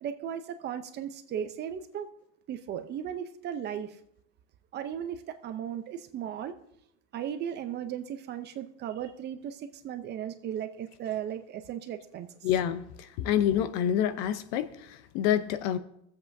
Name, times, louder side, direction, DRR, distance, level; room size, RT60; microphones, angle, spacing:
voice 1, 0.0-2.1 2.5-4.0 4.7-6.5 7.1-12.3, right 9 dB, 30° right, 9 dB, 0.6 m, -36 dB
voice 2, 12.4-15.8, left 10 dB, 60° left, 13 dB, 0.7 m, -27 dB
23.0 x 7.8 x 2.7 m, 0.76 s
supercardioid pair, 150°, 34 cm